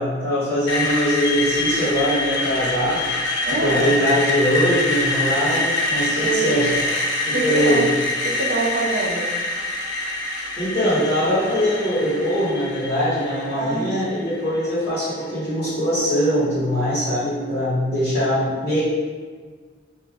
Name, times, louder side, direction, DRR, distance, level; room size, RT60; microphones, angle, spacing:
voice 1, 0.0-3.1 3.5-6.8 7.2-7.9 10.6-18.8, equal, 45° left, -11 dB, 1.4 m, -22 dB
Screech, 0.7-14.6, left 2 dB, 70° left, 0.6 m, -25 dB
voice 2, 3.4-4.0 6.2-6.9 7.3-7.9 8.2-9.3 13.6-14.4, right 3 dB, 70° right, 0 dB, 0.6 m, -26 dB
5.3 x 2.6 x 2.4 m, 1.5 s
head